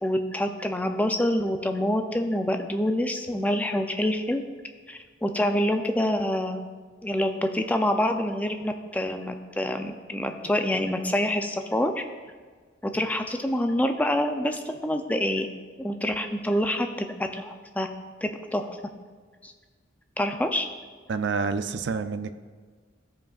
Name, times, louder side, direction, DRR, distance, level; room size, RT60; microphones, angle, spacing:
voice 1, 0.0-4.4 4.9-6.6 7.0-12.0 12.8-15.5 15.8-17.9 18.2-18.8 19.4-19.5 20.2-20.7, left 1 dB, 10° left, 5 dB, 0.4 m, -26 dB
voice 2, 21.1-22.3, right 5 dB, 75° right, 10 dB, 0.4 m, -28 dB
14.5 x 5.1 x 2.4 m, 1.5 s
head